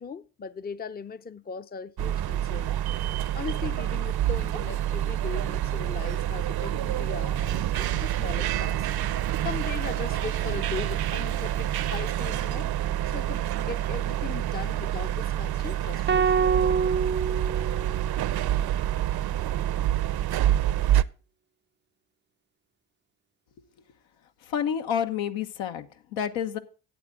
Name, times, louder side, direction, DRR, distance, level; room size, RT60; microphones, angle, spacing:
voice 1, 0.0-2.7 3.3-8.9 9.4-12.7 13.1-16.5, left 6 dB, 20° left, 0.7 m, -38 dB
sound 1, 2.0-21.0, right 12 dB, 50° right, 0.7 m, -27 dB
sound 2, 16.1-18.4, right 6 dB, 25° right, 0.5 m, -26 dB
voice 2, 24.4-26.6, left 8 dB, 75° left, 1.3 m, -29 dB
11.5 x 8.5 x 3.7 m
hypercardioid pair, 55°, 47 cm